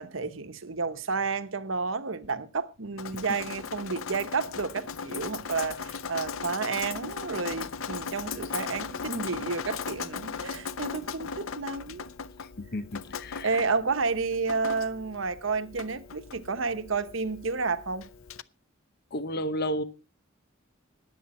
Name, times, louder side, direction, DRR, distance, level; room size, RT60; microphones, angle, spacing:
voice 1, 0.0-12.1 13.4-18.0, right 4 dB, 75° right, 1.1 m, -31 dB
Drip, 3.0-18.4, left 5 dB, 85° left, 0.6 m, -38 dB
voice 2, 12.6-13.6 19.1-19.8, equal, 50° left, 0.9 m, -32 dB
20.5 x 8.1 x 4.2 m
head